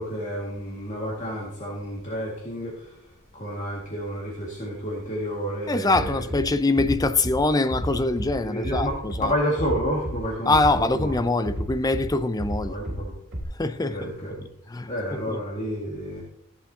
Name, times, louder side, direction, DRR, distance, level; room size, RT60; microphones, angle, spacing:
voice 1, 0.0-3.0 3.3-6.2 8.4-8.9 9.2-11.2 12.6-13.1 13.9-14.5 14.9-16.2, equal, 35° left, 1.9 m, -30 dB
voice 2, 5.7-9.3 10.5-12.8 13.5-14.1 14.7-15.4, left 2 dB, 15° left, 0.4 m, -24 dB
Bass drum, 5.9-6.4 6.8-7.4 7.7-8.3 8.6-9.2 9.6-10.2 10.5-11.1 11.4-12.1 12.4-13.0 13.3-13.4, equal, 55° right, 3.1 m, -31 dB
14.5 x 7.8 x 2.8 m
head